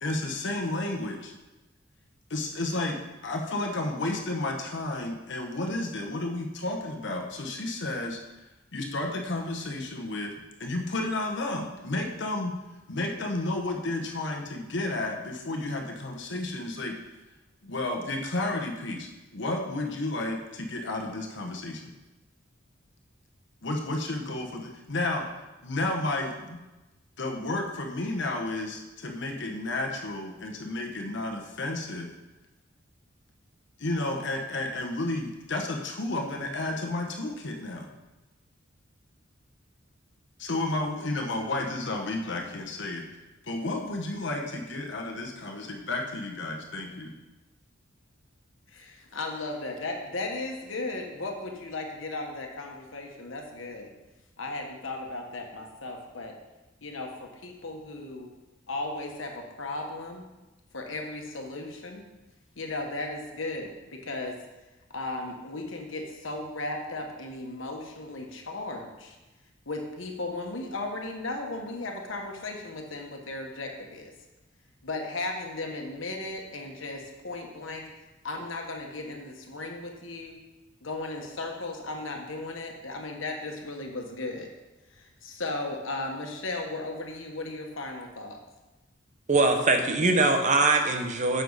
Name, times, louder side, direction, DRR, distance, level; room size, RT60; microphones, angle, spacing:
voice 1, 0.0-1.3 2.3-8.2 8.7-12.5 12.9-17.0 17.6-21.9 23.6-25.3 25.6-26.6 27.2-32.1 33.8-37.9 40.4-43.0 43.4-47.1, left 2 dB, 65° left, 2 dB, 1.1 m, -32 dB
voice 2, 48.7-53.9 54.4-56.3 56.8-58.3 58.7-60.3 60.7-62.0 62.6-64.4 64.9-69.2 69.7-74.1 74.8-77.8 78.2-80.4 80.8-84.5 84.9-88.4, left 2 dB, 85° left, 2 dB, 1.4 m, -36 dB
voice 3, 89.3-91.4, right 3 dB, 40° right, 5 dB, 0.9 m, -22 dB
9.8 x 6.6 x 4.0 m, 1.1 s
head